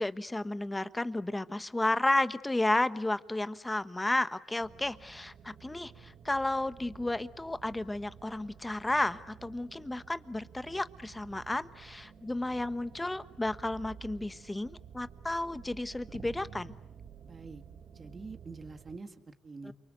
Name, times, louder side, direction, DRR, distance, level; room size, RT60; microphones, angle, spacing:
voice 1, 0.0-16.7 19.6-19.7, left 2 dB, 15° left, 13 dB, 1.1 m, -32 dB
sound 1, 4.6-19.0, right 7 dB, 65° right, 2.1 m, -52 dB
voice 2, 17.2-17.6 17.9-19.7, right 4 dB, 35° right, 7 dB, 2.0 m, -46 dB
30.0 x 24.0 x 8.1 m, 0.89 s
cardioid pair, 90°, 0 cm